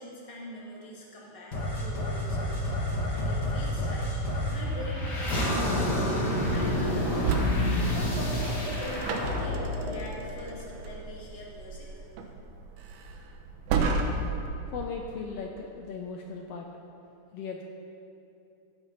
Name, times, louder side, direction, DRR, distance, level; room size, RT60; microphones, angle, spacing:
voice 1, 0.0-2.7 3.1-4.1 4.5-7.3 7.9-11.9, equal, 15° left, -4 dB, 1.4 m, -43 dB
sound 1, 1.5-10.8, left 1 dB, 35° left, 2.0 m, -29 dB
sound 2, 6.4-14.5, right 3 dB, 80° right, 2.4 m, -32 dB
voice 2, 14.7-16.7 17.3-17.6, left 5 dB, 90° left, 2 dB, 1.3 m, -37 dB
16.0 x 9.5 x 4.1 m, 2.8 s
omnidirectional pair, 3.7 m